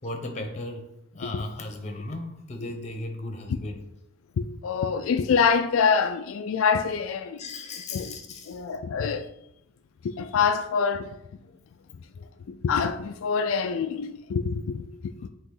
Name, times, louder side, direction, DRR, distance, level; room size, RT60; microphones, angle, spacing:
voice 1, 0.0-3.8 7.4-8.6, left 2 dB, 35° left, 0.8 m, -36 dB
voice 2, 4.4-7.4 7.9-8.1 8.5-9.2 10.0-11.1 12.5-15.1, left 6 dB, 70° left, 0.3 m, -25 dB
8.4 x 3.0 x 3.8 m
head